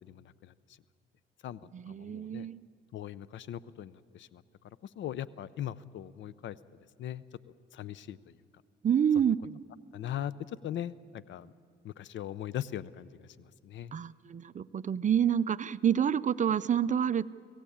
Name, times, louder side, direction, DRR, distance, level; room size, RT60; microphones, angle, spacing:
voice 1, 0.0-0.5 1.4-1.6 1.9-2.5 2.9-4.4 5.0-6.6 7.0-7.2 7.7-8.2 9.9-10.3 10.6-11.5 11.8-13.3 13.6-13.9, left 11 dB, 70° left, 18 dB, 0.6 m, -39 dB
voice 2, 1.7-2.6 8.8-9.6 13.9-17.3, right 8 dB, 40° right, 16 dB, 0.5 m, -28 dB
25.5 x 16.5 x 8.6 m, 2.2 s
cardioid pair, 90°, 20 cm